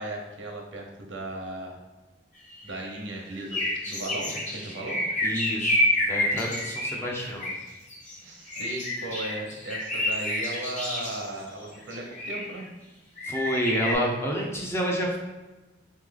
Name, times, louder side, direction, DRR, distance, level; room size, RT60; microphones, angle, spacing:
voice 1, 0.0-1.8 2.6-5.1 8.2-12.7, right 1 dB, 85° right, 1 dB, 1.0 m, -36 dB
sound 1, 2.5-3.0 3.4-8.1 8.5-11.3 11.9-12.6 13.2-13.9, left 1 dB, 40° left, 1.3 m, -29 dB
voice 2, 5.2-7.5 13.2-15.2, equal, 15° left, -2 dB, 0.7 m, -29 dB
4.0 x 3.2 x 3.8 m, 1.2 s
head